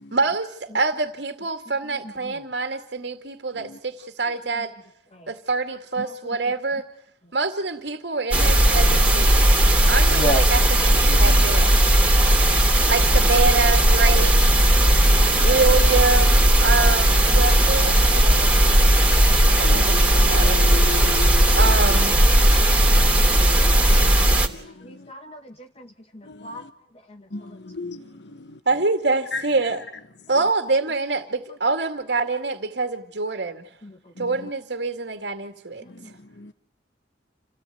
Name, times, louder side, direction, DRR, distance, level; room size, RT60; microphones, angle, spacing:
voice 1, 0.1-4.7 5.3-6.8 7.3-9.4 9.9-11.7 12.9-14.4 15.4-18.8 19.6-20.6 21.5-22.2 28.7-29.8 30.3-32.9 33.2-33.5 34.2-35.8, right 3 dB, 70° right, 2.2 m, -25 dB
sound 1, 8.3-24.5, right 1 dB, 5° right, 3.0 m, -17 dB
voice 2, 10.1-10.4 12.3-12.7 16.8-16.9 17.4-17.5 19.2-19.9 22.7-22.8 24.8-26.6 27.1-27.2 27.5-27.6 33.8-34.0 36.0-36.1, equal, 35° left, 1.4 m, -33 dB
voice 3, 15.1-15.5 19.6-21.6 22.8-23.8 24.0-24.2 24.6-24.7 26.3-26.6 27.3-28.0 29.3-29.4 36.4-36.5, left 3 dB, 70° left, 1.2 m, -35 dB
29.0 x 18.0 x 9.3 m
head